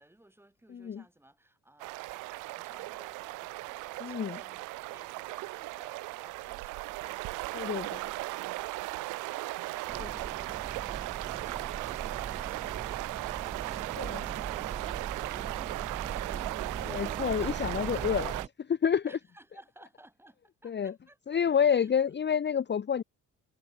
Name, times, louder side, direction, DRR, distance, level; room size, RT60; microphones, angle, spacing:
voice 1, 0.0-16.3 19.0-21.2 21.7-21.9, right 1 dB, 10° right, 6.2 m, -59 dB
voice 2, 0.7-1.0 4.0-4.4 7.5-8.0 10.0-10.1 14.0-14.2 16.8-18.3 18.6-19.0 20.6-20.9 21.3-23.0, left 7 dB, 35° left, 0.9 m, -28 dB
sound 1, 1.8-18.5, right 21 dB, 90° right, 0.5 m, -37 dB
sound 2, 9.9-18.5, right 6 dB, 25° right, 0.4 m, -40 dB
cardioid pair, 90°, 30 cm